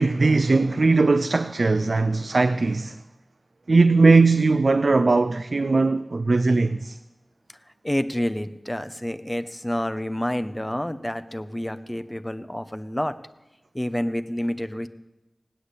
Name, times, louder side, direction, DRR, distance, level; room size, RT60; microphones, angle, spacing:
voice 1, 0.0-3.0 3.7-7.0, right 3 dB, 70° right, 0.4 m, -19 dB
voice 2, 7.8-13.1 13.7-14.9, left 1 dB, 15° left, 0.9 m, -28 dB
16.5 x 10.0 x 8.3 m
wide cardioid pair, 65°, 0 cm